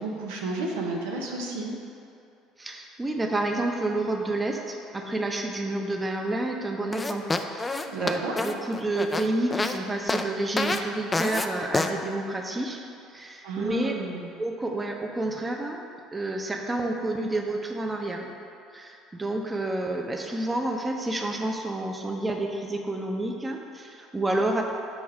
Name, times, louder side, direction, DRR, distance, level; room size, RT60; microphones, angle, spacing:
voice 1, 0.0-1.7 7.9-8.3 13.4-14.3, right 3 dB, 80° right, -1 dB, 0.7 m, -32 dB
voice 2, 2.6-12.8 13.1-13.9 14.4-15.8 16.1-18.3 18.7-24.6, right 2 dB, 20° right, 2 dB, 0.7 m, -29 dB
sound 1, 6.9-9.8 10.1-10.3 10.6-10.8 11.1-11.5 11.7-11.9, left 3 dB, 20° left, 0.3 m, -27 dB
6.5 x 3.1 x 4.8 m, 2.6 s
hypercardioid pair, 75°, 0 cm